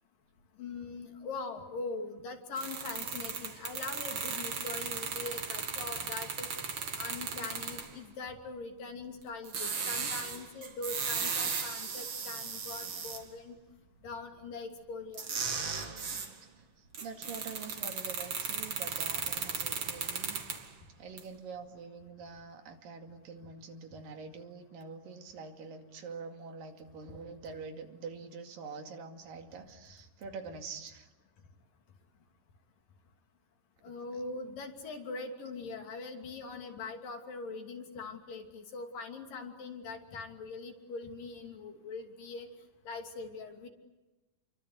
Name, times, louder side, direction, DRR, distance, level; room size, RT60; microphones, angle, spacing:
voice 1, 0.6-6.5 6.9-13.6 14.0-15.3 33.8-42.5 42.9-43.7, left 3 dB, 80° left, 4 dB, 4.6 m, -42 dB
sound 1, 2.6-7.9 9.4-13.2 15.1-16.3 16.9-20.7 21.2-21.3, right 5 dB, 45° right, 3.0 m, -36 dB
voice 2, 16.4-31.1 34.1-34.2, right 4 dB, 85° right, 5 dB, 4.1 m, -46 dB
30.0 x 23.5 x 8.1 m, 1.1 s
omnidirectional pair, 3.9 m